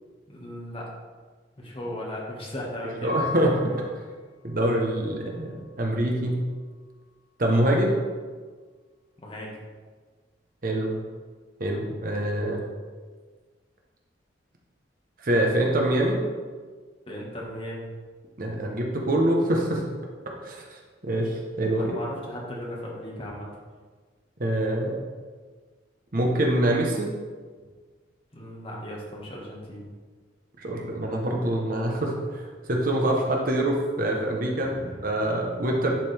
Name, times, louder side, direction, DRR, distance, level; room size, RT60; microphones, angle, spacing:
voice 1, 0.3-0.9 1.6-3.2 9.2-9.6 17.1-17.9 21.8-23.5 28.3-29.9 34.6-35.0, left 1 dB, 30° left, -4 dB, 1.7 m, -36 dB
voice 2, 3.0-3.5 4.4-6.4 7.4-8.0 10.6-10.9 11.6-12.6 15.2-16.2 18.4-19.8 20.4-20.7 21.0-21.9 24.4-25.0 26.1-27.1 30.6-32.4 32.7-35.9, right 1 dB, 50° right, 0 dB, 1.0 m, -25 dB
Piano, 3.1-5.8 6.5-7.2, left 2 dB, 50° left, 1.5 m, -39 dB
10.5 x 5.0 x 3.5 m, 1.5 s
head